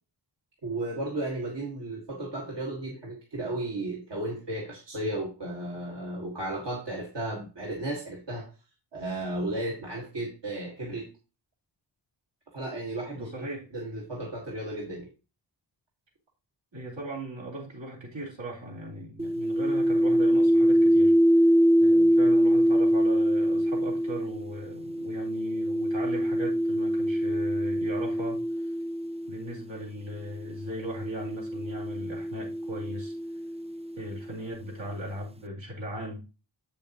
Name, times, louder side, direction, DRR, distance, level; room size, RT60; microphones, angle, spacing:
voice 1, 0.6-8.5 8.9-11.1 12.5-13.5 13.7-15.1, right 1 dB, 70° right, -2 dB, 1.9 m, -34 dB
voice 2, 13.2-13.7 16.7-21.1 21.8-28.7 29.3-33.1 34.0-36.2, right 1 dB, 85° right, -4 dB, 3.9 m, -38 dB
sound 1, 19.2-29.6 30.5-34.2, equal, 15° right, 0.4 m, -24 dB
8.0 x 7.0 x 2.9 m, 0.31 s
wide cardioid pair, 70°, 43 cm